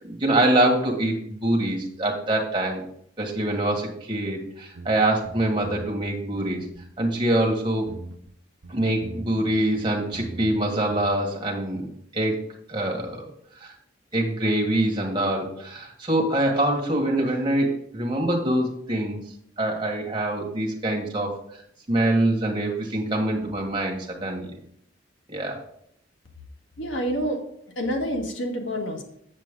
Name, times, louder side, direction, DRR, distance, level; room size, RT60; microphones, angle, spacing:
voice 1, 0.0-2.8 3.2-6.6 7.0-7.9 8.7-11.9 12.1-12.4 12.7-13.3 13.6-13.7 14.1-19.2 19.6-21.6 21.9-24.6 25.3-25.6, right 1 dB, 25° right, 0 dB, 1.8 m, -24 dB
sound 1, 4.7-4.9 5.2-6.1 6.4-7.5 7.9-8.3 8.6-10.6 10.9-11.1, right 2 dB, 90° right, 0.7 m, -40 dB
voice 2, 26.8-27.4 27.7-29.0, equal, 80° left, 3 dB, 1.4 m, -27 dB
7.5 x 7.4 x 3.7 m, 0.69 s
head